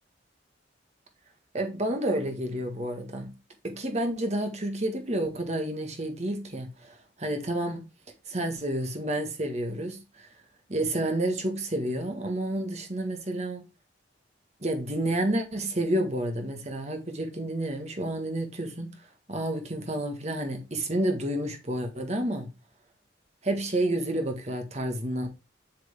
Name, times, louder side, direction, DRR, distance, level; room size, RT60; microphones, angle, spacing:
voice 1, 1.5-3.3 3.6-7.9 8.3-10.3 10.7-13.6 14.6-18.9 19.3-22.5 23.4-25.3, right 1 dB, 35° right, 1.7 m, -30 dB
7.8 x 7.5 x 3.6 m
head